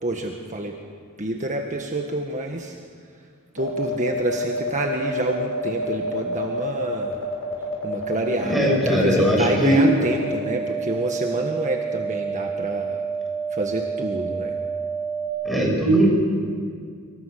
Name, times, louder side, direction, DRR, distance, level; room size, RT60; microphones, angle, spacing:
voice 1, 0.0-0.8 1.2-2.8 3.5-7.3 7.8-13.0 13.5-14.6, right 2 dB, 35° right, 2 dB, 1.6 m, -28 dB
sound 1, 3.6-15.3, right 3 dB, 80° left, 7.2 m, -28 dB
voice 2, 8.4-9.8 15.4-16.1, right 1 dB, ahead, -1 dB, 6.6 m, -19 dB
27.0 x 24.5 x 6.7 m, 2.1 s
head